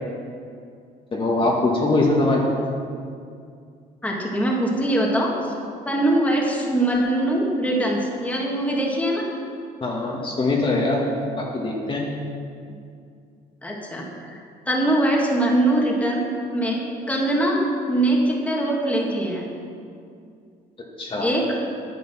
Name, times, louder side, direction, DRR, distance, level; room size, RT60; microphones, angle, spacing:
voice 1, 1.1-2.4 9.8-11.0 11.4-12.0 21.0-21.4, left 2 dB, 30° left, -2 dB, 1.7 m, -22 dB
voice 2, 4.0-5.6 5.9-9.3 12.7-12.8 13.6-14.4 14.7-16.2 16.5-17.6 17.9-19.5 21.2-21.6, right 1 dB, 10° left, -2 dB, 1.9 m, -22 dB
9.7 x 9.2 x 6.1 m, 2.4 s
cardioid pair, 110°, 17 cm